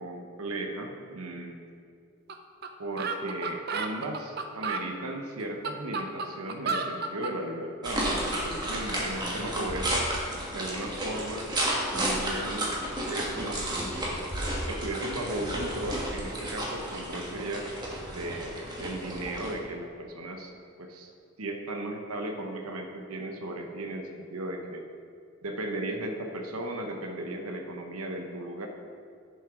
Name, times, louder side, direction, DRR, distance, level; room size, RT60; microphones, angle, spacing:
voice 1, 0.0-1.6 2.8-10.1 10.5-11.5 11.9-12.8 13.1-14.2 14.6-17.7 18.1-20.5 20.8-21.1 21.4-24.8 25.4-28.7, right 1 dB, 85° right, 3 dB, 0.9 m, -36 dB
sound 1, 2.3-2.4 2.6-2.7 3.0-4.9 5.4-7.4, right 4 dB, 45° right, 0.6 m, -32 dB
sound 2, 7.8-19.5, right 1 dB, 20° right, 1.4 m, -32 dB
8.8 x 7.2 x 5.1 m, 2.3 s
head